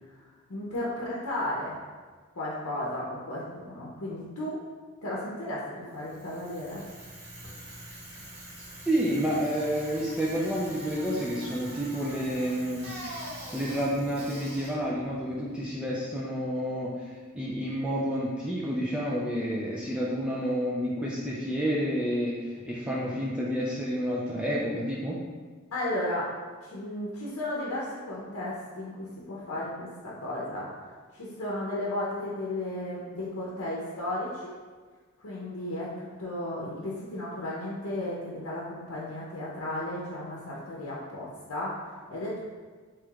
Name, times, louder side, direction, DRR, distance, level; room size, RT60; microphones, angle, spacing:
voice 1, 0.5-1.8 2.4-4.6 5.0-6.9 25.7-26.3 26.6-34.5 35.2-42.4, left 1 dB, 85° left, -5 dB, 0.7 m, -34 dB
Bicycle, 5.9-16.0, right 1 dB, 80° right, 1.4 m, -44 dB
voice 2, 8.9-12.9 13.5-25.2, equal, 5° right, -6 dB, 0.3 m, -29 dB
4.7 x 3.1 x 2.3 m, 1.5 s
head